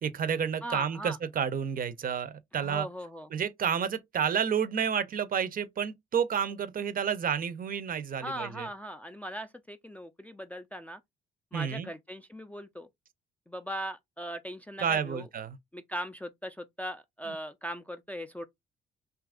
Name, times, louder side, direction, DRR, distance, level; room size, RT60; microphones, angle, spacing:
voice 1, 0.0-2.9 3.3-8.7 11.5-11.9 14.8-15.6, right 7 dB, 45° right, 0.5 m, -30 dB
voice 2, 0.6-1.2 2.5-3.3 8.2-11.0 11.5-12.9 13.5-15.3 15.7-18.5, equal, 5° left, 0.3 m, -39 dB
2.8 x 2.4 x 3.5 m
cardioid pair, 90°, 20 cm